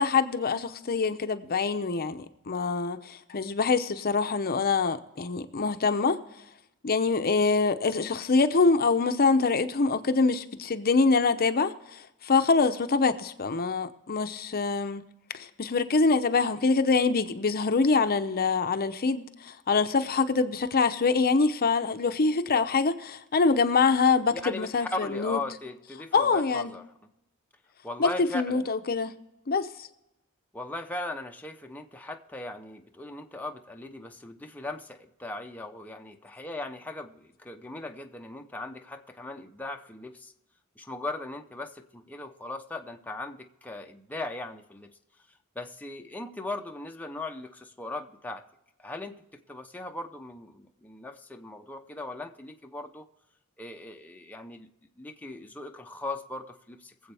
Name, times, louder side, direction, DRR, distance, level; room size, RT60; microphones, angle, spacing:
voice 1, 0.0-6.2 6.8-15.0 15.3-25.4 26.1-26.7 28.0-29.1 29.5-29.9, left 4 dB, 45° left, 0.7 m, -25 dB
voice 2, 24.3-26.9 27.8-28.7 30.5-40.3 40.8-45.0 45.5-48.5 48.8-53.1 53.6-54.7 55.0-57.1, left 2 dB, 5° left, 0.7 m, -38 dB
23.0 x 7.8 x 3.4 m
head